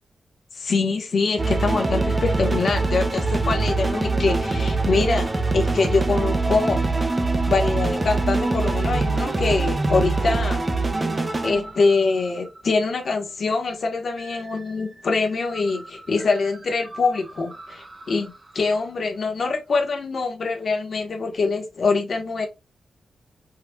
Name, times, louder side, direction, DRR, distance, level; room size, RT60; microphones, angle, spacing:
voice 1, 0.5-6.8 7.5-10.7 11.4-22.5, left 4 dB, 55° left, 1.0 m, -24 dB
sound 1, 1.4-12.6 14.2-14.8 15.1-15.2 15.5-18.3, right 3 dB, 20° right, 0.4 m, -24 dB
4.7 x 2.3 x 2.2 m
wide cardioid pair, 145°, 0 cm